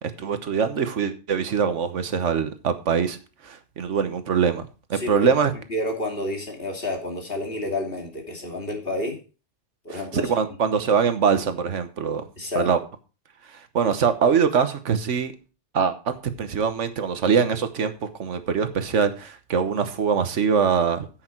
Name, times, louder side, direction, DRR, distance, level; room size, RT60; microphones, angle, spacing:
voice 1, 0.0-3.2 3.4-5.5 9.9-12.2 12.5-12.8 13.5-15.3 15.7-21.1, right 6 dB, 80° right, 10 dB, 1.4 m, -23 dB
voice 2, 4.9-5.3 5.7-9.2 9.8-10.3 12.4-12.7, left 1 dB, 50° left, 1 dB, 2.8 m, -29 dB
10.0 x 8.2 x 4.5 m, 0.34 s
omnidirectional pair, 1.2 m